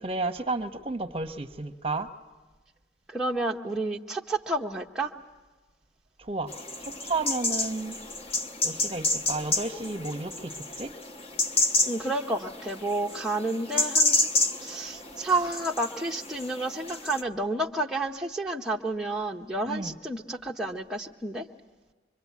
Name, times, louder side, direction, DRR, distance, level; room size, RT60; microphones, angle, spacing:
voice 1, 0.0-2.1 6.2-6.5 6.8-7.9 8.6-10.5 10.8-10.9 19.7-20.0, right 3 dB, 30° right, 7 dB, 1.0 m, -32 dB
voice 2, 3.1-5.1 11.9-14.3 14.6-21.4, right 2 dB, 5° right, -2 dB, 0.7 m, -30 dB
sound 1, 6.5-17.2, left 2 dB, 30° left, 1.0 m, -30 dB
25.5 x 23.5 x 8.3 m, 1.2 s
head